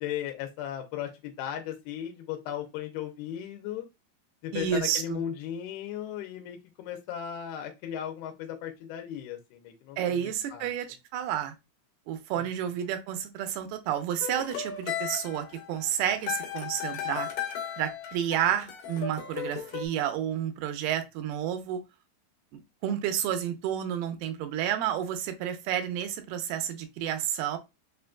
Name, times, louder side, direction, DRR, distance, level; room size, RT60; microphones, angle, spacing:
voice 1, 0.0-3.8 4.4-10.7, left 10 dB, 90° left, 2.5 m, -36 dB
voice 2, 4.5-5.2 10.0-10.9 11.1-11.5 12.1-17.3 17.8-21.8 22.5-27.6, right 10 dB, 90° right, 2.6 m, -30 dB
sound 1, 14.2-19.9, left 9 dB, 70° left, 2.4 m, -35 dB
6.0 x 2.5 x 2.2 m
omnidirectional pair, 4.4 m